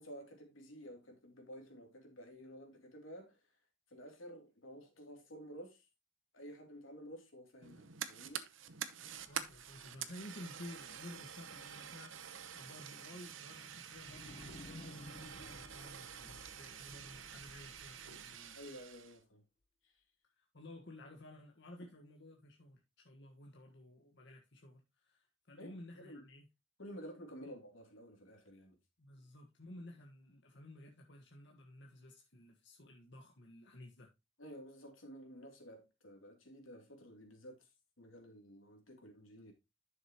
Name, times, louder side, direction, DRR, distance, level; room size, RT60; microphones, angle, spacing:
voice 1, 0.0-3.5 3.9-5.9 6.3-8.5 18.5-19.4 19.8-19.9 21.8-21.9 25.6-25.7 26.0-26.3 26.8-28.8 34.4-37.7 38.0-39.5, equal, 90° left, 2.8 m, -52 dB
Fire, 7.6-19.2, right 8 dB, 75° right, 0.9 m, -48 dB
sound 1, 9.0-12.0 12.4-12.5 13.9-19.0, left 2 dB, 35° left, 0.8 m, -56 dB
voice 2, 9.3-18.6 20.4-26.4 27.4-27.5 29.0-34.1, left 1 dB, 60° left, 1.5 m, -54 dB
11.0 x 6.6 x 2.9 m
head